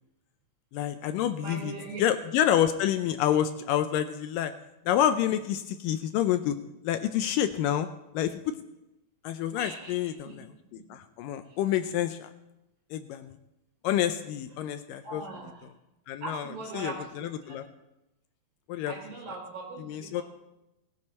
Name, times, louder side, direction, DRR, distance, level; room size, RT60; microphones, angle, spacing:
voice 1, 0.7-1.7 2.0-4.5 4.9-6.6 6.8-7.9 8.1-8.5 9.2-10.5 10.9-12.3 12.9-13.3 13.8-15.2 16.1-16.5 16.7-17.6 18.7-18.9 19.8-20.2, left 11 dB, 80° left, 10 dB, 2.1 m, -28 dB
voice 2, 1.4-2.0 9.5-10.4 15.0-15.6 16.2-17.6 18.9-20.2, right 3 dB, 70° right, -3 dB, 6.7 m, -40 dB
19.5 x 11.0 x 4.3 m, 0.92 s
omnidirectional pair, 4.2 m